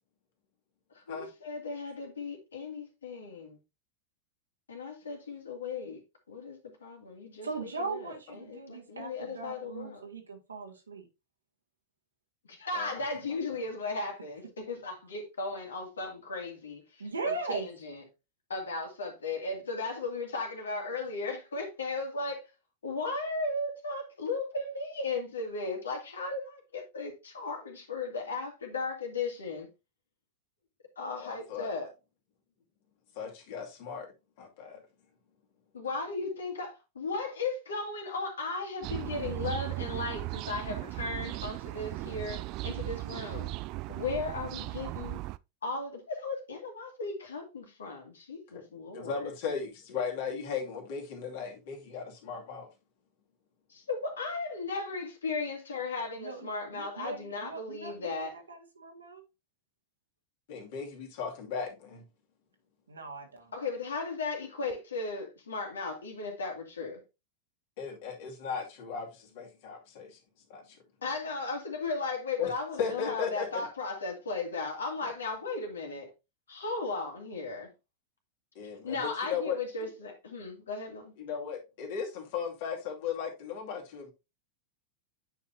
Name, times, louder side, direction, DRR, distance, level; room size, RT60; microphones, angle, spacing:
voice 1, 0.9-3.6 4.7-6.0 6.3-10.0 12.5-18.0 18.5-22.4 22.8-29.7 31.0-31.9 35.7-43.5 43.9-45.3 45.6-49.3 53.7-58.3 63.5-67.0 71.0-76.1 76.5-77.7 78.8-81.1, left 3 dB, 70° left, 2.2 m, -36 dB
voice 2, 7.4-11.1 17.0-17.7 56.2-59.2 62.9-63.5, right 3 dB, 75° right, 1.9 m, -39 dB
voice 3, 31.1-31.7 33.1-34.1 34.4-34.8 48.5-48.6 48.9-52.7 60.5-62.0 67.8-70.2 70.5-70.8 72.4-72.5 72.8-73.5 78.5-79.6 81.2-84.1, left 6 dB, 50° left, 2.4 m, -36 dB
sound 1, 38.8-45.4, right 20 dB, 40° right, 0.3 m, -37 dB
9.0 x 5.6 x 2.7 m
figure-of-eight pair, 90°, 0 cm